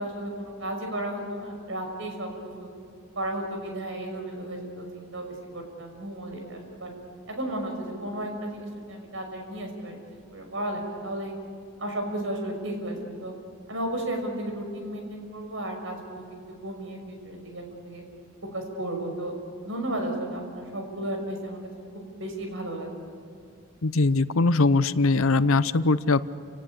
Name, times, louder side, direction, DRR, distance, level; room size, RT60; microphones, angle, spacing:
voice 1, 0.0-2.3 2.6-2.7 3.2-5.3 5.5-6.9 7.3-11.3 11.8-13.3 13.7-16.2 16.6-18.0 18.5-19.3 19.6-21.6 21.9-22.9, right 1 dB, 65° right, 3 dB, 5.9 m, -33 dB
voice 2, 23.8-26.2, left 3 dB, 75° left, 15 dB, 0.7 m, -21 dB
29.5 x 18.0 x 8.6 m, 2.4 s
head